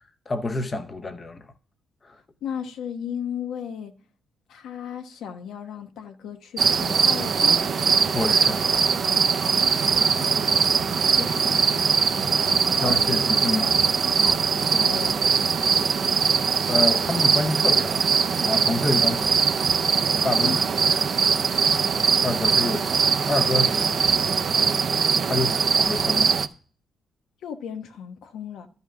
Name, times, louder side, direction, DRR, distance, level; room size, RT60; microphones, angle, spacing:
voice 1, 0.3-1.5 2.0-2.2 8.1-8.7 12.8-13.8 16.7-18.0 18.4-19.4 20.2-20.6 20.9-21.0 22.2-23.0 23.3-24.0 25.3-26.4, left 2 dB, 25° left, 0.7 m, -28 dB
voice 2, 2.4-3.9 4.5-7.7 10.2-10.7 11.1-11.8 12.4-13.1 14.2-14.4 14.7-15.5 20.4-20.6 25.3-25.6 27.4-28.7, left 8 dB, 75° left, 1.1 m, -35 dB
sound 1, 6.6-26.5, right 6 dB, 40° right, 0.6 m, -21 dB
12.5 x 5.5 x 6.1 m
cardioid pair, 155°, 0 cm